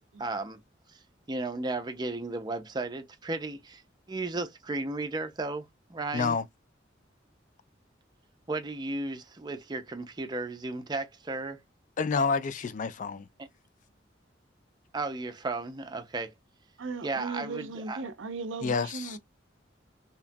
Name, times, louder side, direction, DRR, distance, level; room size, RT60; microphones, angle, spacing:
voice 1, 0.2-0.6 1.3-3.8 4.1-5.6 5.9-6.4 8.5-11.6 13.4-13.5 14.9-16.3 17.0-18.0, right 2 dB, 20° right, 0.4 m, -34 dB
voice 2, 6.1-6.5 12.0-13.3 18.6-19.2, left 5 dB, 40° left, 0.3 m, -28 dB
voice 3, 16.8-19.2, right 4 dB, 80° right, 0.5 m, -37 dB
2.9 x 2.3 x 2.6 m
head